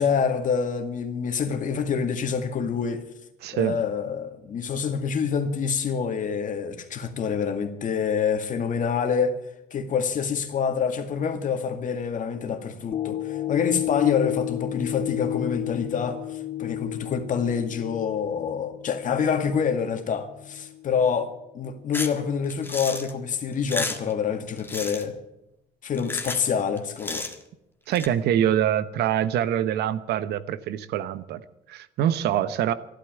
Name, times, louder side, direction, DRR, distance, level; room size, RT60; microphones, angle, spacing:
voice 1, 0.0-3.1 3.5-9.4 9.7-21.3 21.5-25.2 25.8-27.3, left 6 dB, 50° left, 2.1 m, -26 dB
voice 2, 3.4-3.8 27.9-32.7, right 10 dB, 75° right, 0.9 m, -25 dB
sound 1, 12.9-21.3 21.8-21.9, left 13 dB, 35° left, 0.6 m, -33 dB
sound 2, 21.9-22.2 22.5-23.1 23.5-24.1 24.6-25.1 25.9-26.5 26.8-27.4 27.9-28.1, left 2 dB, 10° left, 1.7 m, -32 dB
13.0 x 11.5 x 9.1 m
cardioid pair, 110°, 17 cm